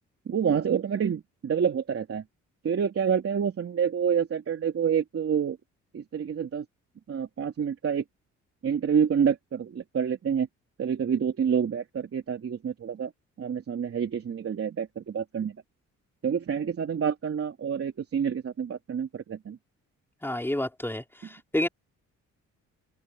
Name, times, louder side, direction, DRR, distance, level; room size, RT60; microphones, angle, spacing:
voice 1, 0.2-2.2 2.6-5.6 5.9-6.6 7.1-8.0 8.6-10.5 10.8-13.1 13.4-15.5 16.2-19.6, right 7 dB, 50° right, 3.3 m, -28 dB
voice 2, 20.2-21.7, left 1 dB, 5° left, 4.9 m, -29 dB
cardioid pair, 90°, 30 cm